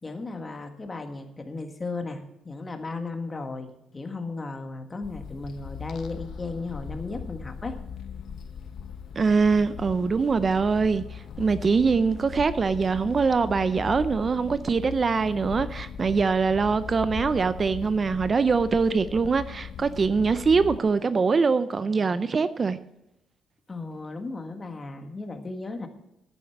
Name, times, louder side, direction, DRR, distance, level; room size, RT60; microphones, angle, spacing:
voice 1, 0.0-7.8 23.7-25.9, left 3 dB, 25° left, 1.6 m, -35 dB
sound 1, 5.0-20.8, left 7 dB, 65° left, 0.8 m, -39 dB
voice 2, 9.1-22.8, right 4 dB, 35° right, 0.5 m, -23 dB
10.5 x 9.1 x 5.9 m
cardioid pair, 90°, 0 cm